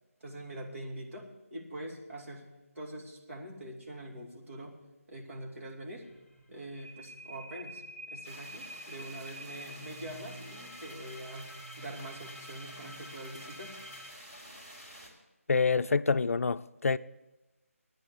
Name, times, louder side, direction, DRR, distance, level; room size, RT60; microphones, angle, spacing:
voice 1, 0.2-2.5 2.7-4.8 5.1-6.1 6.5-7.8 8.1-13.8, right 1 dB, 55° right, 2.6 m, -44 dB
sound 1, 6.0-14.1, equal, 5° right, 1.5 m, -48 dB
sound 2, 8.2-15.1, equal, 30° right, 3.1 m, -50 dB
voice 2, 15.5-17.0, left 4 dB, 65° left, 0.4 m, -27 dB
11.5 x 9.6 x 6.9 m
figure-of-eight pair, 165°, 8 cm